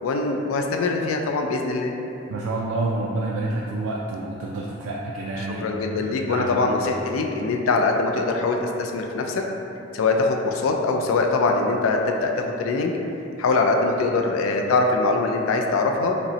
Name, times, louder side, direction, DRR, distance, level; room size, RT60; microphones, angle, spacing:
voice 1, 0.0-2.0 5.6-9.4 9.9-13.0 13.4-16.2, left 3 dB, 90° left, 2 dB, 0.3 m, -23 dB
voice 2, 2.3-6.9, right 2 dB, 75° right, -3 dB, 0.3 m, -29 dB
5.1 x 2.0 x 2.7 m, 2.8 s
head